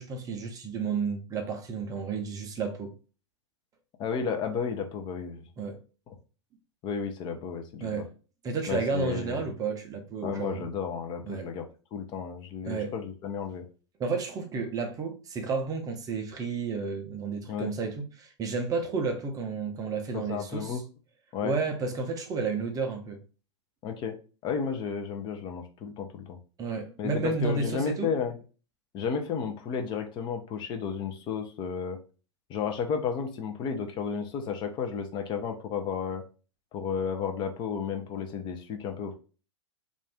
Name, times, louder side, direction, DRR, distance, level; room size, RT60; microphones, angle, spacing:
voice 1, 0.0-2.9 5.6-5.8 7.8-8.1 8.4-10.6 11.2-11.4 12.7-12.9 14.0-20.8 21.4-23.2 26.6-28.1, right 4 dB, 25° right, 0.6 m, -31 dB
voice 2, 4.0-5.4 6.8-8.0 8.7-9.5 10.2-11.6 11.9-13.6 17.5-17.7 20.1-20.8 21.3-21.5 23.8-24.2 24.4-26.4 27.0-28.4 28.9-32.0 32.5-36.2 36.7-39.2, left 6 dB, 30° left, 0.6 m, -32 dB
2.5 x 2.4 x 3.4 m
figure-of-eight pair, 105°, 15 cm